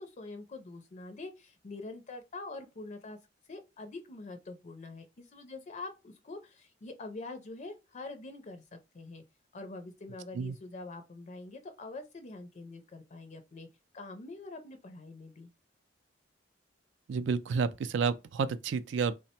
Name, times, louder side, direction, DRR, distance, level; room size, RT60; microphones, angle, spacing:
voice 1, 0.0-3.2 3.5-8.6 8.9-9.2 9.5-13.7 13.9-15.5, left 3 dB, 40° left, 0.4 m, -45 dB
voice 2, 17.1-19.2, right 5 dB, 70° right, 0.4 m, -30 dB
3.2 x 2.1 x 4.2 m
head